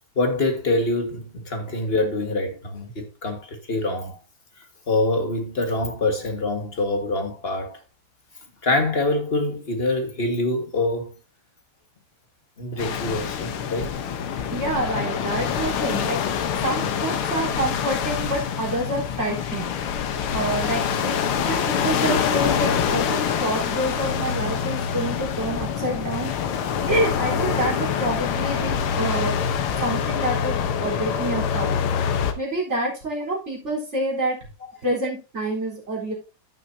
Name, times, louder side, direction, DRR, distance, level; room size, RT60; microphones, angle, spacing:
voice 1, 0.1-4.2 4.9-7.8 8.6-11.1 12.6-14.0, left 2 dB, 30° left, 1.7 m, -25 dB
sound 1, 12.8-32.3, left 7 dB, 80° left, 1.9 m, -25 dB
voice 2, 14.5-19.7 20.3-26.3 26.9-29.4 29.8-31.8 32.4-34.4 34.8-36.1, right 1 dB, 30° right, 4.3 m, -27 dB
15.0 x 6.4 x 2.7 m
omnidirectional pair, 2.3 m